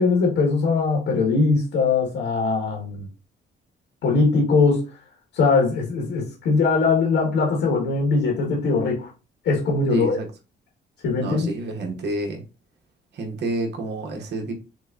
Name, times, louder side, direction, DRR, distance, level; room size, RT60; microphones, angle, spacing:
voice 1, 0.0-3.1 4.0-4.9 5.3-9.1 9.4-10.2 11.0-11.5, left 4 dB, 80° left, 1.4 m, -21 dB
voice 2, 9.9-10.3 11.2-12.4 13.1-14.5, right 2 dB, 60° right, 0.9 m, -29 dB
6.0 x 2.1 x 2.4 m
cardioid pair, 90°, 20 cm